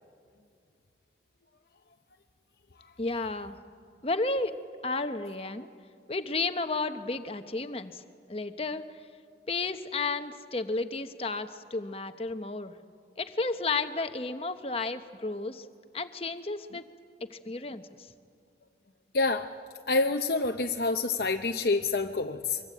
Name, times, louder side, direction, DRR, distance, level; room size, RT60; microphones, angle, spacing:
voice 1, 3.0-3.6 4.0-4.6 4.8-5.7 6.1-8.0 8.3-8.8 9.5-12.7 13.2-15.7 15.9-16.9 17.3-18.1, left 3 dB, 30° left, 9 dB, 1.0 m, -32 dB
voice 2, 19.1-19.5 19.9-22.6, left 3 dB, 55° left, 4 dB, 0.8 m, -27 dB
24.5 x 24.0 x 8.5 m, 2.3 s
head